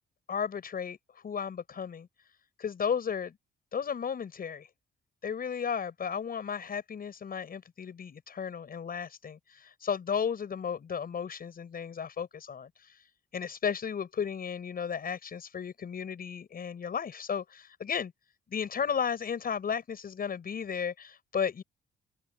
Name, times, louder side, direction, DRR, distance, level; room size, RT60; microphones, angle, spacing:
voice 1, 0.3-2.1 2.6-3.4 3.7-4.7 5.2-13.0 13.3-18.1 18.5-21.6, left 7 dB, 50° left, 6.3 m, -34 dB
open air
cardioid pair, 90°, 20 cm